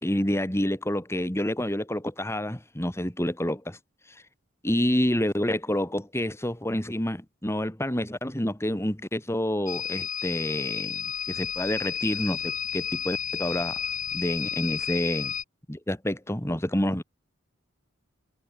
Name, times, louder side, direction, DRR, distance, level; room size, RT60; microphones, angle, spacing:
voice 1, 0.0-3.8 4.6-13.8 14.1-15.3 15.7-17.0, left 1 dB, 15° left, 2.8 m, -28 dB
sound 1, 9.7-15.4, left 8 dB, 40° left, 7.7 m, -32 dB
head